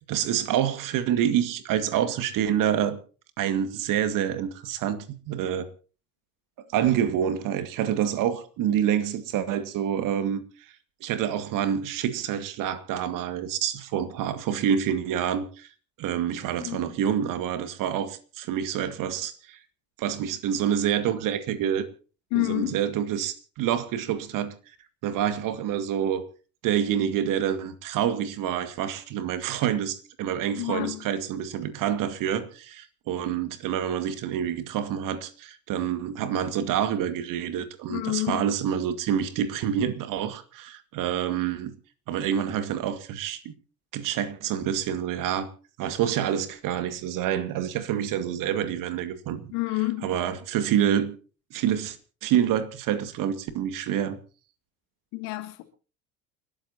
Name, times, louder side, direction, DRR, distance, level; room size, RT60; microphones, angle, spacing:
voice 1, 0.1-3.0 3.4-5.7 6.7-10.4 11.0-15.7 16.0-19.6 20.0-21.9 22.4-24.5 25.0-26.2 26.6-41.8 42.1-43.5 43.9-45.5 45.8-49.5 50.0-51.2 51.5-52.0 52.2-54.2, right 9 dB, 50° right, 2.0 m, -27 dB
voice 2, 16.6-16.9 22.3-22.8 30.5-31.0 37.9-38.5 49.5-50.1 55.1-55.6, left 20 dB, 55° left, 2.5 m, -29 dB
29.5 x 13.0 x 2.9 m
figure-of-eight pair, 60°, 43 cm